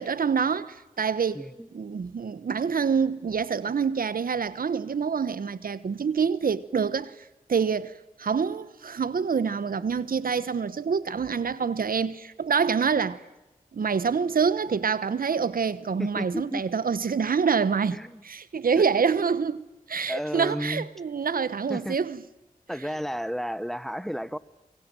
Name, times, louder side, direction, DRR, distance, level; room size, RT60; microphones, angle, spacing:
voice 1, 0.0-1.4 1.7-7.1 7.5-7.9 8.2-13.2 13.7-18.0 18.2-22.2, right 6 dB, 80° right, 1.1 m, -26 dB
voice 2, 1.3-1.7 16.0-16.6 17.9-18.2 18.7-18.9 20.1-20.9 21.7-22.0 22.7-24.4, equal, ahead, 1.2 m, -32 dB
24.5 x 23.5 x 9.0 m
cardioid pair, 45°, 15 cm